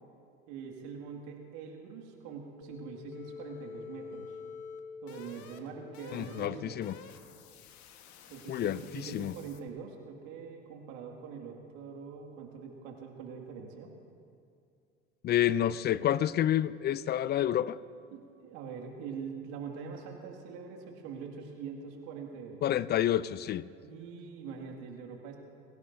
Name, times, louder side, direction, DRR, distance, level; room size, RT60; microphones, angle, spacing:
voice 1, 0.5-4.4 5.0-6.8 8.3-13.9 18.1-22.6 23.8-25.4, right 6 dB, 65° right, 1 dB, 2.2 m, -43 dB
sound 1, 2.6-9.7, left 6 dB, 50° left, 1.5 m, -48 dB
voice 2, 6.1-7.0 8.5-9.3 15.2-17.8 22.6-23.7, left 11 dB, 30° left, 18 dB, 0.4 m, -29 dB
23.5 x 16.5 x 2.7 m, 2.4 s
hypercardioid pair, 75°, 35 cm